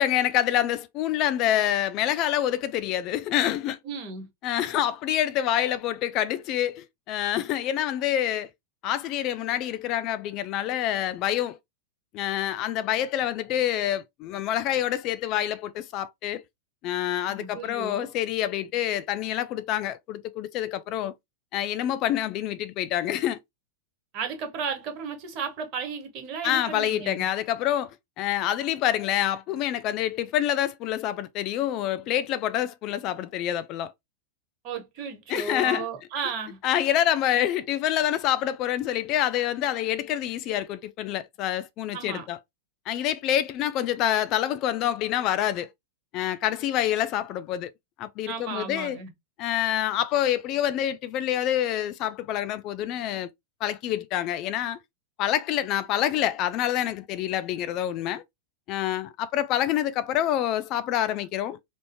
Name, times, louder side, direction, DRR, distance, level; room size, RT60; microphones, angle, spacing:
voice 1, 0.0-3.8 4.4-8.5 8.8-11.6 12.1-16.4 16.8-21.1 21.5-23.4 26.4-27.9 28.2-33.9 35.3-35.9 36.6-42.4 42.9-45.7 46.1-47.7 48.0-49.0 49.4-53.3 53.6-54.8 55.2-58.2 58.7-61.6, left 11 dB, 45° left, 0.3 m, -27 dB
voice 2, 3.8-4.3 17.3-18.1 24.1-27.3 34.6-36.6 41.9-42.3 48.3-49.1, right 6 dB, 45° right, 1.2 m, -34 dB
3.4 x 2.5 x 2.6 m
hypercardioid pair, 100°, 0 cm